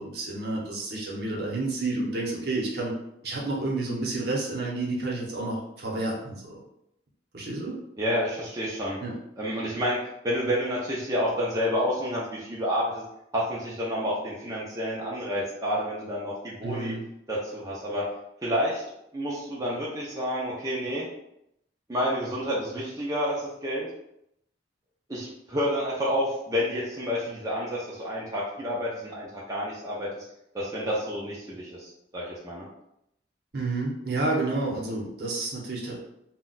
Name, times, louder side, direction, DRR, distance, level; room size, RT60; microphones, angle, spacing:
voice 1, 0.0-2.9 3.2-6.6 7.3-7.8 9.0-9.1 16.6-17.0 33.5-36.0, right 2 dB, 60° right, -3 dB, 0.8 m, -30 dB
voice 2, 8.0-9.0 9.4-13.0 13.3-16.9 17.3-18.1 18.4-18.8 19.1-21.1 21.9-23.9 25.1-30.1 30.5-32.7, equal, 20° right, -6 dB, 0.4 m, -29 dB
2.3 x 2.1 x 3.9 m, 0.79 s
head